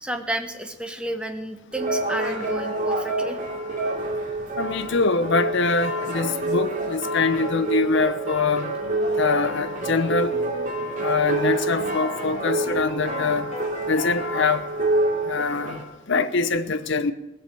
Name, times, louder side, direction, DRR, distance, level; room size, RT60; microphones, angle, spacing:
voice 1, 0.0-3.4, right 1 dB, 5° right, 0.8 m, -31 dB
sound 1, 1.7-15.8, right 2 dB, 35° right, 2.5 m, -27 dB
voice 2, 4.6-8.7 9.2-10.4 11.0-13.5 13.8-14.7 15.3-17.1, left 4 dB, 55° left, 0.7 m, -24 dB
sound 2, 8.4-14.4, equal, 30° left, 1.9 m, -39 dB
17.5 x 7.0 x 7.5 m
head